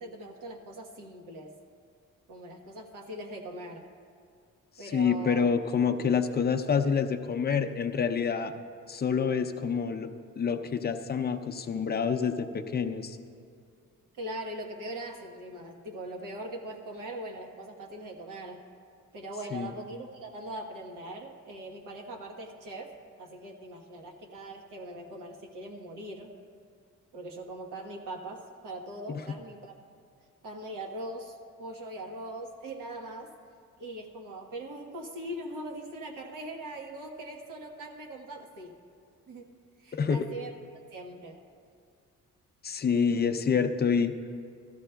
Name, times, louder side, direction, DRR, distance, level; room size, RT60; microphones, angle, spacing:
voice 1, 0.0-1.5 2.3-3.9 4.8-5.5 14.1-18.6 19.1-26.3 27.1-29.7 30.4-33.3 33.8-38.7 39.3-39.5 39.8-40.5 40.9-41.4, right 1 dB, 80° right, 1 dB, 1.2 m, -41 dB
voice 2, 4.9-8.5 8.9-10.1 10.4-13.2 19.5-19.7 29.1-29.2 39.9-40.3 42.6-44.1, left 6 dB, 30° left, 6 dB, 0.5 m, -27 dB
17.5 x 13.5 x 2.3 m, 2.3 s
wide cardioid pair, 160°, 32 cm